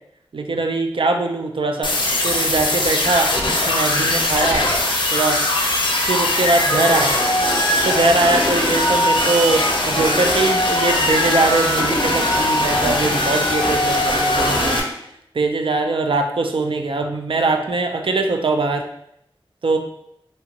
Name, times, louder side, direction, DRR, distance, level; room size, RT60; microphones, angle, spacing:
voice 1, 0.3-1.9 2.2-3.3 3.7-4.7 5.1-5.4 6.1-14.8 15.3-18.8 19.6-19.8, right 3 dB, 65° right, 4 dB, 0.4 m, -21 dB
sound 1, 1.8-14.8, left 1 dB, 55° left, 0.5 m, -20 dB
2.9 x 2.4 x 2.8 m, 0.75 s
wide cardioid pair, 55°, 10 cm